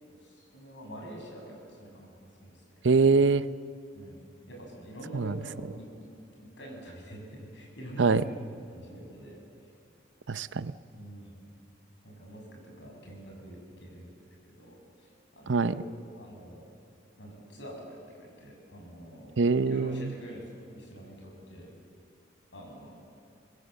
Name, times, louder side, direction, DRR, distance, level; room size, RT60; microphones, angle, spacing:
voice 1, 0.0-2.1 2.4-2.8 3.9-4.2 4.5-6.1 6.6-9.7 10.9-11.4 12.0-15.9 16.2-16.6 17.2-19.3 19.6-21.7 22.5-23.0, right 1 dB, 80° left, 0 dB, 6.8 m, -46 dB
voice 2, 2.8-3.4 5.1-5.3 8.0-8.2 10.3-10.7 15.5-15.7 19.4-20.1, right 4 dB, 85° right, 15 dB, 0.6 m, -23 dB
25.0 x 20.5 x 7.7 m, 2.5 s
head